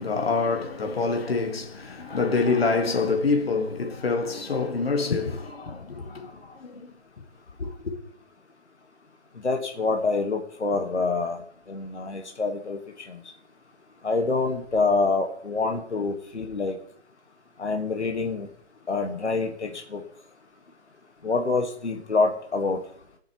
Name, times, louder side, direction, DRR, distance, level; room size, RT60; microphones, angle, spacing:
voice 1, 0.0-6.9 7.6-7.9, left 4 dB, 60° left, 1.9 m, -26 dB
voice 2, 9.4-11.4 11.7-12.8 13.1-13.2 14.0-16.8 17.6-18.5 18.9-20.0 21.2-22.8, left 3 dB, 80° left, 1.7 m, -26 dB
19.0 x 7.9 x 3.1 m
figure-of-eight pair, 160°, 34 cm